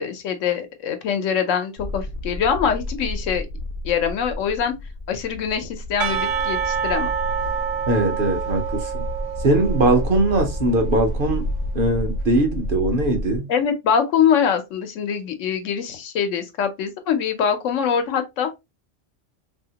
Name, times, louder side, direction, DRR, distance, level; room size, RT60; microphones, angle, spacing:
voice 1, 0.0-3.5 3.8-4.7 5.1-7.1 13.5-18.6, left 7 dB, 85° left, 1.0 m, -23 dB
sound 1, 1.8-13.4, equal, 60° left, 0.6 m, -30 dB
Percussion / Church bell, 6.0-11.1, right 7 dB, 80° right, 1.0 m, -28 dB
voice 2, 7.9-9.0 9.4-11.5 11.7-13.5, right 2 dB, 55° right, 0.8 m, -21 dB
2.8 x 2.7 x 2.7 m
omnidirectional pair, 1.3 m